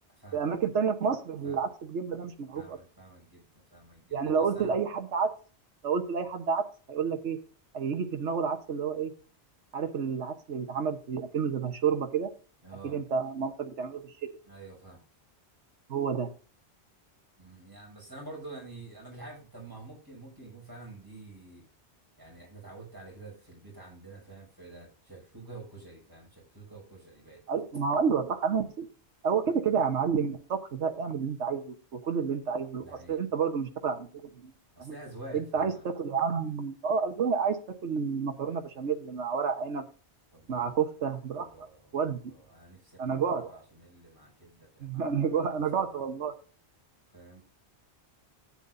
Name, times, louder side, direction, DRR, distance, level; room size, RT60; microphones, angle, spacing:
voice 1, 0.3-2.8 4.1-5.3 5.8-7.4 7.7-9.1 9.7-12.3 12.8-14.1 15.9-16.3 27.5-28.9 29.2-34.5 34.8-34.9 35.3-37.6 37.8-39.8 40.5-41.7 41.9-42.3 43.0-43.6 44.8-46.3, right 6 dB, 85° right, 6 dB, 1.4 m, -30 dB
voice 2, 2.5-4.8 12.6-13.0 14.5-15.0 17.4-21.6 22.2-27.4 32.8-33.2 34.8-35.8 40.3-40.8 41.4-42.0 42.3-45.5 45.8-46.0 47.1-47.4, right 2 dB, 20° right, -2 dB, 6.6 m, -48 dB
13.5 x 8.9 x 2.6 m, 0.37 s
omnidirectional pair, 1.2 m